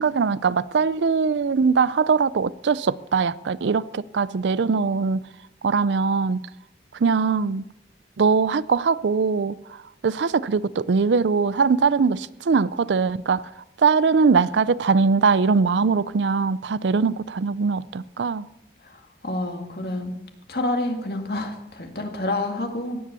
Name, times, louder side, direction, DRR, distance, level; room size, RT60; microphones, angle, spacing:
voice 1, 0.0-5.2 5.6-6.4 7.0-7.6 8.2-13.5 13.8-18.5, right 5 dB, 90° right, 0.5 m, -21 dB
voice 2, 18.8-20.2 20.5-23.0, left 1 dB, 60° left, 2.2 m, -28 dB
16.5 x 10.5 x 6.8 m
head